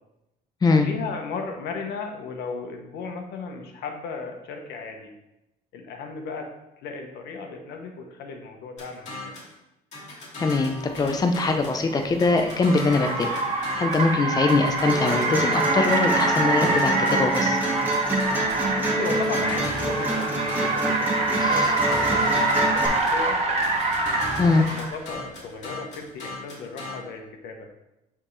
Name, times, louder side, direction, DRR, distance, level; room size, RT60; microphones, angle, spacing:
voice 1, 0.6-5.1 5.7-6.5 6.8-9.3 18.7-23.6 24.4-27.7, left 4 dB, 85° left, 4 dB, 1.1 m, -36 dB
sound 1, 8.8-9.5 9.9-11.8 12.2-14.1 14.5-18.7 19.1-21.0 21.3-23.2 23.6-26.9, left 2 dB, 45° left, 2.5 m, -36 dB
voice 2, 10.4-13.3 13.8-17.6 21.4-21.7 24.4-24.7, left 3 dB, 20° left, 5 dB, 0.6 m, -22 dB
Car, 11.1-25.0, right 2 dB, 40° right, 1.1 m, -25 dB
sound 2, 14.9-22.9, right 1 dB, 10° right, 1.6 m, -27 dB
9.5 x 3.6 x 3.3 m, 0.91 s
cardioid pair, 110°, 17 cm